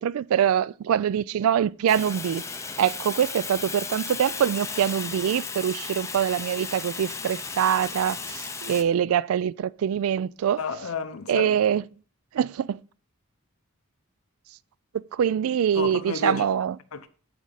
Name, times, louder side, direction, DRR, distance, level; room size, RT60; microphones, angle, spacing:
voice 1, 0.0-2.4 2.8-10.6 11.3-11.8 12.3-12.8 15.1-16.8, right 9 dB, 70° right, 0.3 m, -24 dB
Fire, 1.9-8.8, left 5 dB, 15° left, 0.5 m, -35 dB
voice 2, 10.6-11.5 15.7-16.4 16.9-17.1, left 4 dB, 75° left, 0.7 m, -31 dB
11.5 x 4.8 x 3.9 m
head